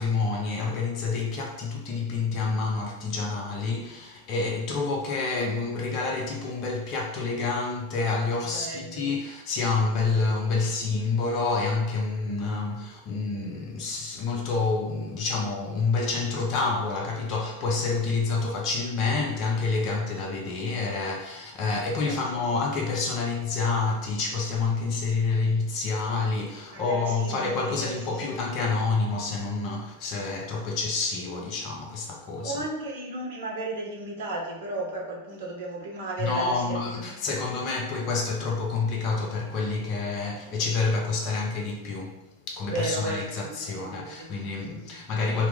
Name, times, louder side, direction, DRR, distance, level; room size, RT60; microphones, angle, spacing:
voice 1, 0.0-32.6 36.2-45.5, left 4 dB, 40° left, 0.6 m, -28 dB
voice 2, 8.5-9.2 10.1-10.2 21.8-22.4 26.7-28.3 32.4-37.2 42.7-44.3 44.7-45.1, right 2 dB, 55° right, 0.7 m, -35 dB
2.9 x 2.0 x 3.5 m
figure-of-eight pair, 90°, 0 cm